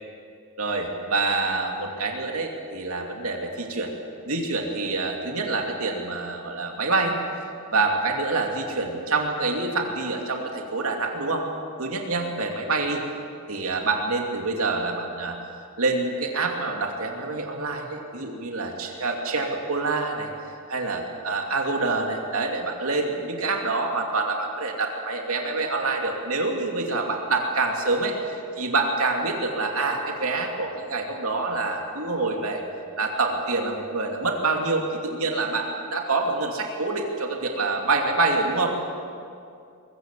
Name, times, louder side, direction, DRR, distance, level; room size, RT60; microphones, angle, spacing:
voice 1, 0.6-3.9 4.3-11.5 11.8-13.0 13.5-15.4 15.8-20.3 20.7-32.6 33.0-38.8, right 3 dB, 70° right, 1 dB, 2.8 m, -26 dB
23.0 x 22.0 x 7.6 m, 2.4 s
head